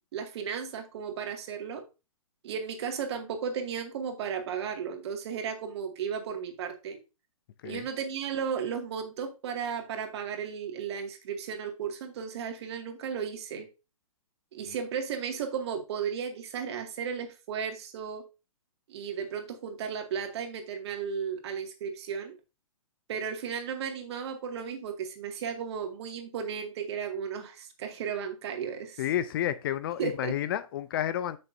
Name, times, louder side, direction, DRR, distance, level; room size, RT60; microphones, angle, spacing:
voice 1, 0.1-1.8 2.4-7.0 7.6-13.7 14.5-18.2 18.9-22.3 23.1-29.0 30.0-30.3, right 7 dB, 45° right, 2.1 m, -34 dB
voice 2, 29.0-31.4, left 11 dB, 40° left, 0.5 m, -30 dB
9.9 x 6.6 x 2.7 m
figure-of-eight pair, 130°, 18 cm